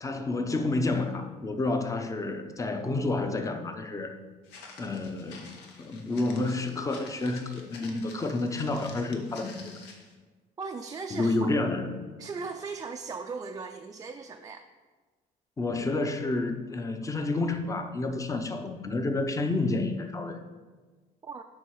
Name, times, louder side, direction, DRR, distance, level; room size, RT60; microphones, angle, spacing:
voice 1, 0.0-4.1 4.8-5.5 5.8-9.7 11.1-11.9 15.6-20.4, left 2 dB, 20° left, 7 dB, 0.7 m, -29 dB
Walk footsteps, 4.4-10.1, left 4 dB, 90° left, 1.0 m, -49 dB
voice 2, 10.6-11.6 12.2-14.7 21.2-21.4, right 4 dB, 20° right, 4 dB, 0.4 m, -38 dB
7.4 x 4.8 x 4.7 m, 1.4 s
cardioid pair, 110°, 17 cm